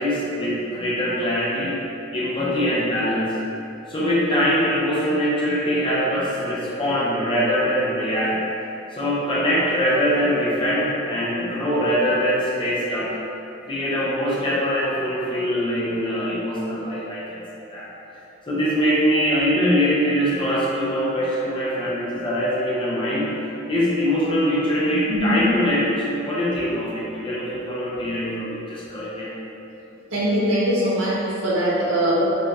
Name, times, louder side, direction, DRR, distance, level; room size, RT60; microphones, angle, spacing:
voice 1, 0.0-1.8 2.1-3.3 3.9-8.4 8.9-13.1 13.6-17.9 18.5-23.3 23.7-29.3, equal, 25° left, -7 dB, 0.6 m, -23 dB
voice 2, 25.1-25.5 30.1-32.2, equal, 70° right, -8 dB, 0.7 m, -21 dB
2.3 x 2.2 x 3.9 m, 2.9 s
head